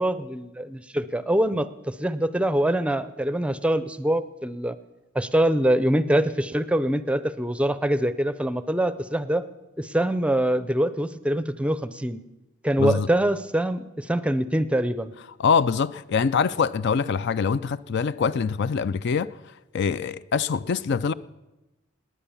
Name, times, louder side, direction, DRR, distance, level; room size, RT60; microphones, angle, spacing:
voice 1, 0.0-4.8 5.1-9.5 9.8-12.2 12.6-15.1, right 1 dB, 5° right, 0.5 m, -24 dB
voice 2, 15.4-19.3 19.7-21.1, left 6 dB, 55° left, 0.4 m, -24 dB
19.0 x 9.8 x 7.1 m
head